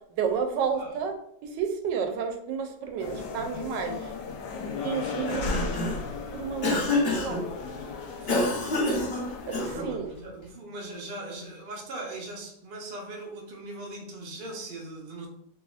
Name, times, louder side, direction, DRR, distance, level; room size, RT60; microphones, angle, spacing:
voice 1, 0.1-1.2 1.4-4.1 4.8-5.8 6.3-6.8 7.2-7.4 9.5-10.1, right 6 dB, 85° right, 1.2 m, -31 dB
sound 1, 3.0-9.8, left 4 dB, 75° left, 1.2 m, -36 dB
Cough, 5.1-6.1 6.6-7.4 8.3-9.9, left 2 dB, 45° left, 0.9 m, -27 dB
voice 2, 8.2-8.9 9.7-15.3, right 2 dB, 60° right, 0.5 m, -40 dB
4.0 x 2.8 x 2.4 m
omnidirectional pair, 1.9 m